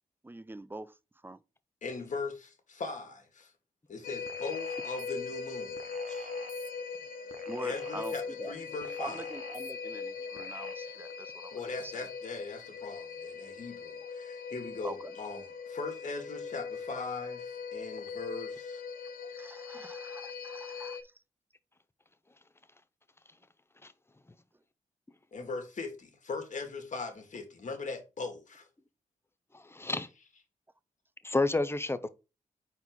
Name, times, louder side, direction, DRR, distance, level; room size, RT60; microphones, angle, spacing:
voice 1, 0.2-1.0 1.2-1.4 7.5-8.6 9.0-12.1 14.8-15.2 19.2-21.1, right 2 dB, 15° right, 0.6 m, -44 dB
voice 2, 1.8-3.5 3.9-6.3 7.6-9.2 11.5-18.8 25.3-28.7, left 3 dB, 60° left, 1.9 m, -40 dB
sound 1, 4.0-21.0, left 5 dB, 80° left, 0.7 m, -40 dB
sound 2, 4.3-5.1 5.8-6.7 7.3-8.2 8.8-9.7 10.4-10.7, right 6 dB, 65° right, 0.8 m, -50 dB
voice 3, 29.7-30.1 31.2-32.1, left 2 dB, 15° left, 0.8 m, -29 dB
4.4 x 4.1 x 5.4 m
supercardioid pair, 40°, 15 cm